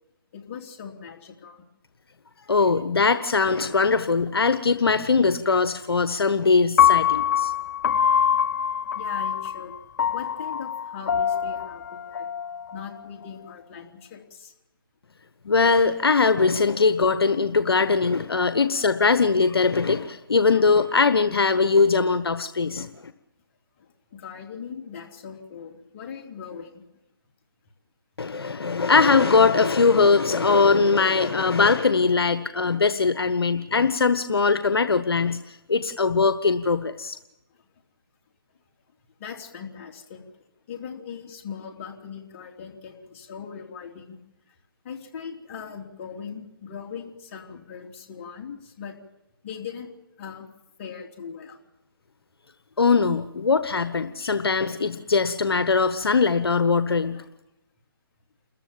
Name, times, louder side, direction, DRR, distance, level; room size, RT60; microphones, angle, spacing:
voice 1, 0.3-1.6 8.9-9.7 10.1-12.3 12.7-14.5 18.3-18.9 20.5-20.6 23.8-26.9 33.1-33.3 37.5-37.6 39.2-40.3 40.7-44.2 44.5-44.6 44.8-49.0 49.4-49.9 50.2-50.4 50.8-51.6 57.1-57.3, left 7 dB, 30° left, 2 dB, 3.4 m, -40 dB
voice 2, 2.5-7.5 15.4-22.9 28.2-37.2 52.8-57.2, left 4 dB, 75° left, 11 dB, 1.2 m, -21 dB
Piano, 6.8-13.0, left 9 dB, 50° left, 0.7 m, -23 dB
29.0 x 14.5 x 7.5 m, 0.92 s
figure-of-eight pair, 145°, 13 cm